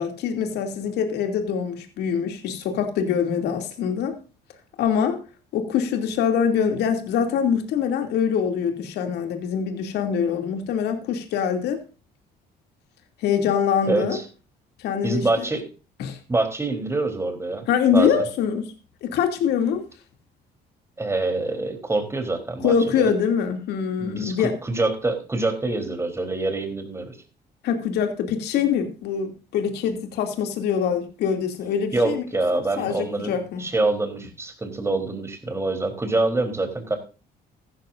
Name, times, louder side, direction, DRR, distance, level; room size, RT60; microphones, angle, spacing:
voice 1, 0.0-4.1 4.8-5.2 5.5-11.8 13.2-14.2 14.8-15.5 16.0-16.2 17.7-18.7 19.0-19.8 22.6-24.5 27.6-32.2 32.5-33.6, left 7 dB, 75° left, 2.7 m, -24 dB
voice 2, 13.9-14.2 15.0-15.7 16.3-17.6 17.9-18.2 21.0-23.1 24.0-24.4 24.6-27.2 31.9-37.0, right 2 dB, 15° right, 3.7 m, -25 dB
15.0 x 13.0 x 2.6 m
cardioid pair, 110°, 17 cm